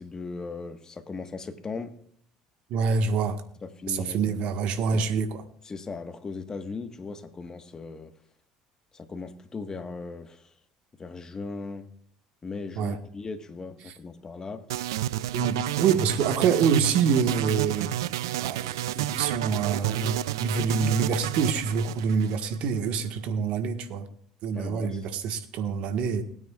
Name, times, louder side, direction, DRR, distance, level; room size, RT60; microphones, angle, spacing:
voice 1, 0.0-1.9 3.6-4.4 4.9-5.1 5.6-8.1 8.9-10.5 11.0-11.9 12.4-14.6 15.9-16.0 24.5-25.2, left 4 dB, 30° left, 8 dB, 1.5 m, -38 dB
voice 2, 2.7-3.4 3.9-5.4 12.8-13.0 15.3-17.9 18.4-24.1 24.4-26.2, right 6 dB, 65° right, 8 dB, 1.5 m, -26 dB
sound 1, 14.7-22.8, right 13 dB, 90° right, 0.3 m, -30 dB
20.5 x 9.3 x 2.4 m, 0.63 s
hypercardioid pair, 75°, 2 cm